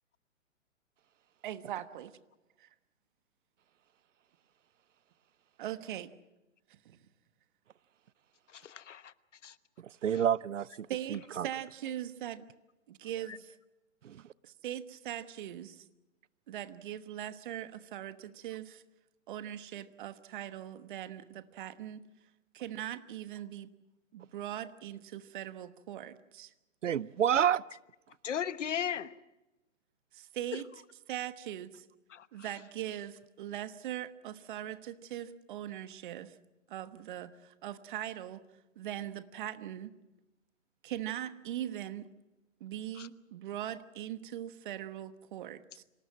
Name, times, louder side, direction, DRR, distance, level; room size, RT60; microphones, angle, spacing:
voice 1, 1.4-2.1 2.6-2.7 5.6-6.1 6.8-7.0 10.9-12.5 12.9-13.5 14.4-15.9 16.5-18.8 19.3-22.1 22.5-23.7 24.1-26.5 30.1-30.7 31.1-31.8 32.3-36.4 36.7-38.4 38.8-40.0 40.8-42.1 42.6-45.8, right 12 dB, 40° right, 13 dB, 1.2 m, -40 dB
voice 2, 8.5-9.1 9.4-9.6 13.3-13.4 28.2-29.1 30.5-30.6 32.1-32.3 43.0-43.1, left 8 dB, 65° left, 15 dB, 1.1 m, -36 dB
voice 3, 9.8-11.5 14.0-14.2 26.8-27.6, right 9 dB, 70° right, 22 dB, 0.7 m, -29 dB
26.0 x 18.0 x 7.5 m, 0.98 s
hypercardioid pair, 135°, 39 cm